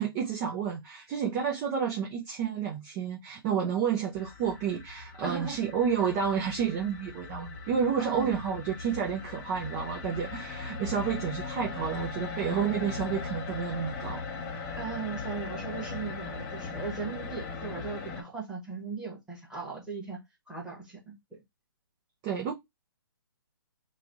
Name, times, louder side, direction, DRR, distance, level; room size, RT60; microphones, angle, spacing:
voice 1, 0.0-14.2 22.2-22.5, right 7 dB, 20° right, 0.6 m, -30 dB
sound 1, 4.1-18.2, left 4 dB, 20° left, 0.7 m, -39 dB
voice 2, 5.2-5.6 8.0-8.3 14.7-20.2 20.5-21.1, right 5 dB, 5° right, 1.4 m, -38 dB
3.1 x 2.4 x 3.9 m
hypercardioid pair, 150°, 12 cm